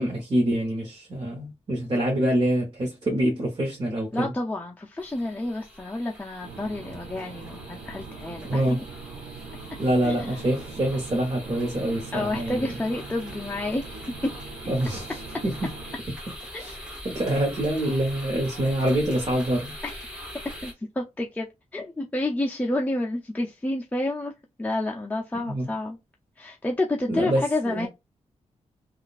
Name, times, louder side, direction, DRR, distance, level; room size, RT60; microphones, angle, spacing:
voice 1, 0.0-4.3 8.4-8.8 9.8-12.8 14.7-15.7 16.6-16.8 17.0-19.7 25.4-25.7 27.1-27.9, right 1 dB, 45° right, 1.1 m, -26 dB
voice 2, 4.1-8.8 10.0-10.4 12.1-14.4 16.5-16.6 19.8-20.2 20.6-21.5 21.7-24.3 24.6-26.0 26.4-27.9, left 2 dB, 10° left, 0.5 m, -29 dB
sound 1, 5.0-20.7, equal, 10° right, 1.3 m, -42 dB
sound 2, 6.4-16.0, right 4 dB, 75° right, 0.6 m, -42 dB
3.7 x 2.4 x 2.4 m
wide cardioid pair, 105°, 12 cm